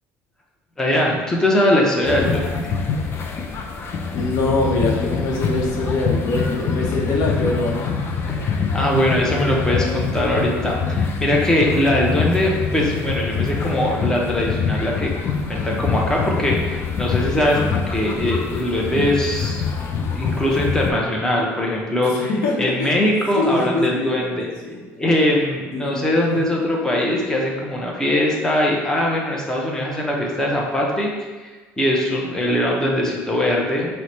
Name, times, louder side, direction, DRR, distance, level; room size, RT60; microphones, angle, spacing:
voice 1, 0.8-2.8 8.3-15.1 15.4-19.6 20.0-22.3 22.6-24.5 25.0-31.1 31.4-31.5 31.8-33.9, left 1 dB, 10° left, -2 dB, 0.7 m, -21 dB
sound 1, 2.0-20.9, left 5 dB, 45° left, 0.5 m, -25 dB
voice 2, 4.1-7.9 22.2-22.9 23.3-24.8 25.7-25.9 26.3-26.4, left 2 dB, 80° left, -2 dB, 0.8 m, -23 dB
4.6 x 2.2 x 4.2 m, 1.3 s
cardioid pair, 110°, 6 cm